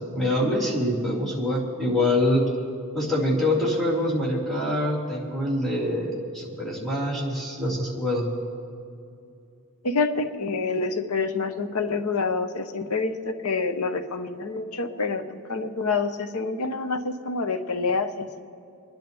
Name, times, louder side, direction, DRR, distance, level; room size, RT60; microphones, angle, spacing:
voice 1, 0.1-2.4 2.9-8.3, left 1 dB, ahead, -8 dB, 3.0 m, -25 dB
voice 2, 9.8-18.4, left 4 dB, 85° left, 8 dB, 0.9 m, -27 dB
27.5 x 10.5 x 3.4 m, 2.5 s
head